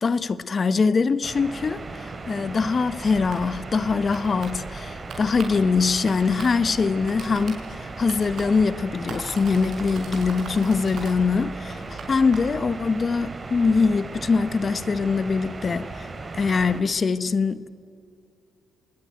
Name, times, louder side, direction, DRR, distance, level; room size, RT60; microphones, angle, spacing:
voice 1, 0.0-16.1 16.3-17.7, left 4 dB, 40° left, 0.8 m, -23 dB
sound 1, 1.2-16.8, right 3 dB, 30° right, 2.6 m, -37 dB
sound 2, 3.1-12.6, right 3 dB, 60° right, 6.5 m, -40 dB
25.5 x 20.0 x 9.3 m
cardioid pair, 90°, 0 cm